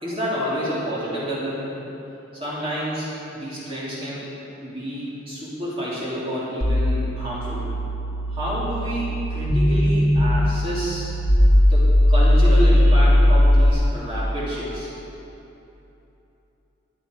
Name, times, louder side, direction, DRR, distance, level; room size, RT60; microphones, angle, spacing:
voice 1, 0.0-1.8 2.3-3.1 3.3-4.2 4.6-7.6 8.3-11.1 11.7-14.9, equal, 25° right, -9 dB, 2.8 m, -29 dB
sound 1, 6.6-13.7, left 1 dB, 85° left, 1.6 m, -18 dB
12.5 x 10.0 x 5.1 m, 3.0 s
head